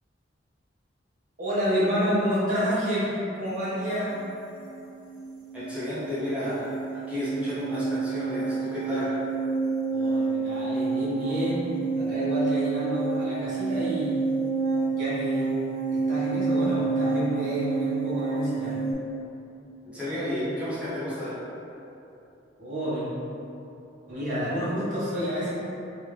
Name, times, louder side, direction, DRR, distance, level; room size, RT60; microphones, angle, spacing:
voice 1, 1.4-4.1 9.9-11.6 12.0-14.2 14.9-15.5 16.1-18.8 22.6-23.0 24.1-25.5, equal, 40° right, -11 dB, 1.3 m, -29 dB
sound 1, 4.1-4.3 4.6-18.9, right 4 dB, 80° right, 1.0 m, -29 dB
voice 2, 5.5-9.2 19.8-21.4, left 1 dB, 5° right, -13 dB, 1.0 m, -32 dB
3.4 x 3.3 x 3.3 m, 2.8 s
head